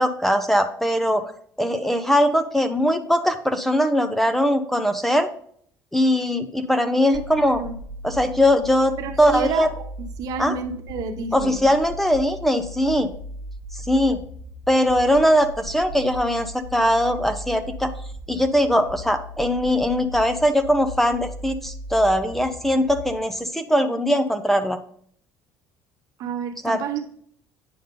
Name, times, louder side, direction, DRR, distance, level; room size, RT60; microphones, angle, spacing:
voice 1, 0.0-1.3 1.6-5.3 5.9-7.6 8.0-9.7 10.4-10.5 11.3-13.1 13.7-14.2 14.7-17.9 18.3-24.8 26.6-26.8, equal, 5° left, 9 dB, 0.7 m, -21 dB
sound 1, 7.1-23.1, equal, 20° left, 1.6 m, -37 dB
voice 2, 7.1-7.7 9.0-9.9 10.2-11.6 26.2-27.2, right 6 dB, 65° right, 6 dB, 1.1 m, -30 dB
9.3 x 5.2 x 3.8 m, 0.62 s
cardioid pair, 105°, 7 cm